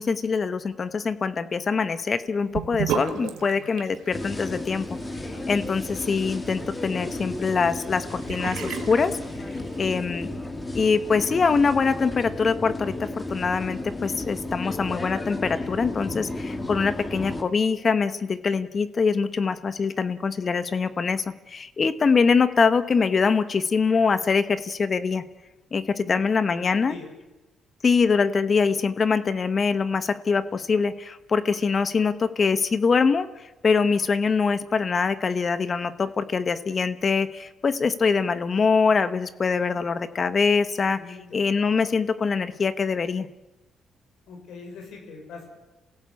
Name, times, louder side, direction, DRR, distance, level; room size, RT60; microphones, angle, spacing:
voice 1, 0.0-4.9 5.2-9.2 9.8-10.3 10.7-25.2 25.7-26.9 27.8-41.0 41.3-43.3, left 5 dB, 40° left, 13 dB, 1.3 m, -24 dB
Sink (filling or washing) / Bathtub (filling or washing), 2.5-9.8, right 9 dB, 85° right, 2.1 m, -36 dB
sound 1, 4.1-17.4, left 2 dB, 20° left, 2.4 m, -33 dB
voice 2, 26.0-27.1 40.9-41.8 44.3-45.4, left 4 dB, 80° left, 3 dB, 6.3 m, -43 dB
27.5 x 16.5 x 8.5 m, 1.1 s
cardioid pair, 90°, 0 cm